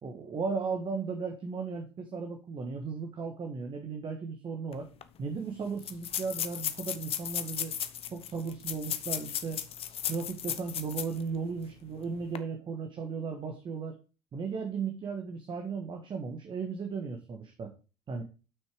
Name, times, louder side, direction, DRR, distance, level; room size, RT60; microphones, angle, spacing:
voice 1, 0.0-4.9 5.2-7.8 8.1-9.6 10.1-14.0 14.3-17.7 18.1-18.2, right 5 dB, 35° right, 4 dB, 1.6 m, -36 dB
sound 1, 4.7-4.8 5.0-5.1 5.8-11.2 11.6-11.7 12.2-12.4, left 10 dB, 45° left, 0.8 m, -35 dB
7.4 x 6.1 x 4.9 m, 0.33 s
hypercardioid pair, 65°, 14 cm